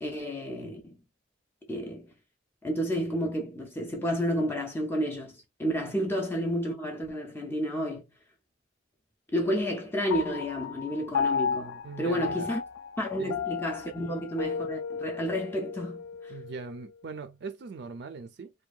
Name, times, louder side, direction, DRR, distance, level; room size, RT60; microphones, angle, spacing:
voice 1, 0.0-1.0 1.7-2.1 2.6-8.1 9.3-12.6 13.0-16.3, equal, 10° left, 0.4 m, -31 dB
Piano, 10.1-16.8, left 6 dB, 90° left, 0.3 m, -34 dB
voice 2, 11.8-12.5 13.2-13.4 14.0-14.1 16.3-18.5, right 4 dB, 55° right, 0.4 m, -41 dB
2.7 x 2.2 x 2.3 m
head